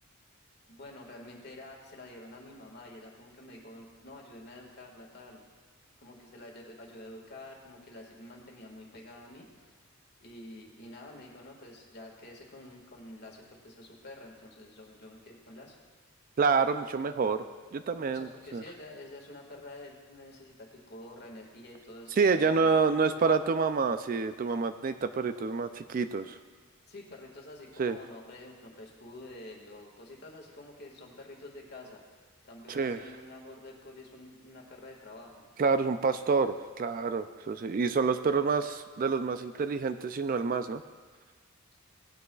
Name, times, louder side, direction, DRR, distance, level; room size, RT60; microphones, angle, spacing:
voice 1, 0.7-5.5 6.0-9.7 10.2-15.8 18.1-23.3 26.9-32.0 32.5-35.4 41.7-41.8, left 1 dB, 50° left, 0 dB, 1.9 m, -48 dB
voice 2, 16.4-17.4 17.7-18.6 22.2-26.4 27.8-28.0 32.7-33.0 35.6-40.8, right 5 dB, 40° right, 10 dB, 0.3 m, -28 dB
17.5 x 9.5 x 2.4 m, 1.5 s
head